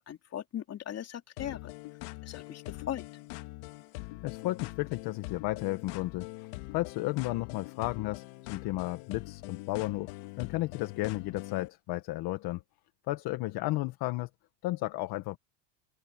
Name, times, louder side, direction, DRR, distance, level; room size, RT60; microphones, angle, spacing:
voice 1, 0.1-1.6 2.3-3.0, left 10 dB, 30° left, 2.9 m, -38 dB
sound 1, 1.4-11.7, left 22 dB, 65° left, 1.9 m, -43 dB
voice 2, 4.2-8.2 8.5-12.6 13.1-14.3 14.6-15.4, left 18 dB, 45° left, 1.5 m, -33 dB
open air
supercardioid pair, 135°, 49 cm